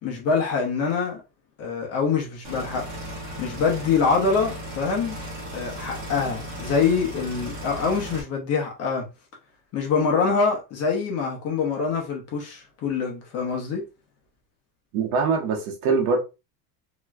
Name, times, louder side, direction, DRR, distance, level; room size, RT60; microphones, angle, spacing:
voice 1, 0.0-1.2 1.6-2.9 3.4-5.2 5.5-9.1 9.7-13.8, left 5 dB, 30° left, 0.9 m, -25 dB
sound 1, 2.4-8.2, equal, 35° right, 1.4 m, -36 dB
voice 2, 14.9-16.2, right 4 dB, 60° right, 1.1 m, -23 dB
3.1 x 3.0 x 2.3 m
cardioid pair, 180°, 46 cm